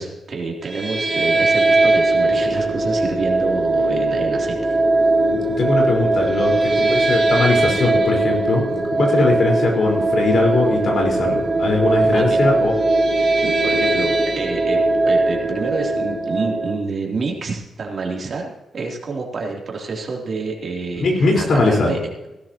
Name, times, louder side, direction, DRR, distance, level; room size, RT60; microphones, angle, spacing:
voice 1, 0.0-4.8 12.1-12.5 13.4-22.0, right 4 dB, 50° right, -1 dB, 3.2 m, -28 dB
sound 1, 0.6-16.8, right 2 dB, 25° right, 3.0 m, -19 dB
voice 2, 5.6-12.7 21.0-21.9, left 3 dB, 60° left, 0 dB, 4.6 m, -20 dB
17.5 x 12.0 x 3.0 m, 1.0 s
cardioid pair, 90°, 0 cm